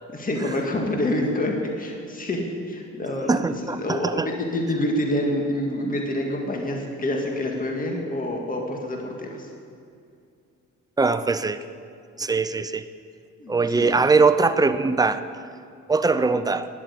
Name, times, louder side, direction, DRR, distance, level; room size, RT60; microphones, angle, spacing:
voice 1, 0.1-9.5 13.4-13.9, left 1 dB, 30° left, 1 dB, 1.9 m, -27 dB
voice 2, 3.3-4.3 11.0-11.6 12.2-12.8 13.5-15.2 15.9-16.7, right 4 dB, 15° right, 11 dB, 0.6 m, -21 dB
10.5 x 8.2 x 8.4 m, 2.3 s
cardioid pair, 90°, 30 cm